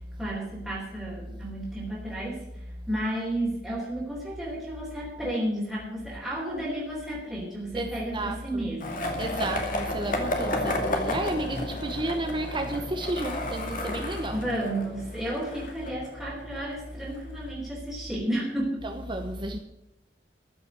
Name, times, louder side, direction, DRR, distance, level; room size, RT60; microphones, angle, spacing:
voice 1, 0.2-9.3 14.0-18.9, right 1 dB, 5° right, 3.7 m, -32 dB
voice 2, 7.7-8.7 9.2-14.4 18.8-19.6, right 1 dB, 30° right, 1.0 m, -32 dB
Skateboard, 8.8-16.7, left 1 dB, 50° left, 2.5 m, -32 dB
14.5 x 6.5 x 9.7 m
head